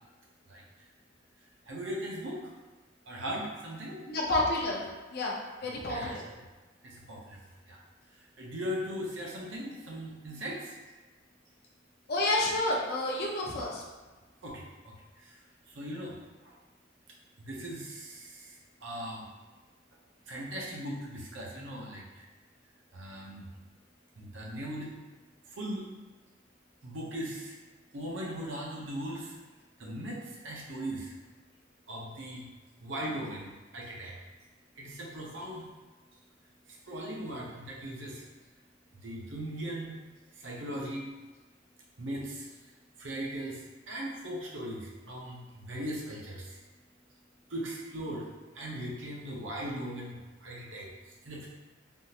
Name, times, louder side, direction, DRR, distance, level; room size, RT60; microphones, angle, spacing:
voice 1, 1.7-2.5 3.1-4.0 5.6-6.1 6.8-7.4 7.7-7.8 8.4-10.8 14.4-15.4 15.7-16.2 16.4-16.6 17.4-18.6 18.8-19.3 20.3-22.0 22.9-23.5 24.2-25.0 25.5-25.8 26.8-27.6 27.9-29.4 29.8-31.1 31.9-32.5 32.8-34.2 34.8-35.7 36.7-38.2 38.9-40.0 40.3-41.1 42.0-42.5 43.0-46.6 47.5-48.3 48.5-51.5, equal, 75° right, -3 dB, 0.7 m, -39 dB
voice 2, 4.1-4.8 5.1-5.3 5.6-6.2 12.1-13.8, left 1 dB, 55° left, -2 dB, 0.6 m, -29 dB
3.6 x 2.4 x 2.7 m, 1.3 s
head